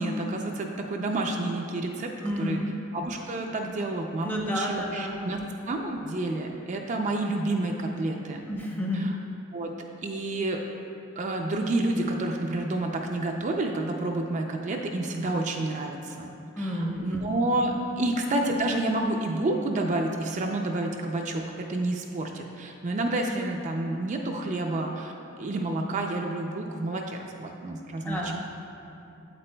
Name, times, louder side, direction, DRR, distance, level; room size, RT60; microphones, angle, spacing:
voice 1, 0.0-2.1 2.4-2.6 2.9-5.4 5.6-8.4 8.9-9.1 9.5-9.7 10.0-10.6 11.2-16.3 16.6-28.3, right 2 dB, 35° right, 1 dB, 0.4 m, -29 dB
voice 2, 2.2-2.7 4.2-5.4 8.5-9.1 16.6-17.2 17.9-18.0 28.0-28.3, equal, 10° left, -2 dB, 0.7 m, -30 dB
8.1 x 8.0 x 2.2 m, 2.7 s
head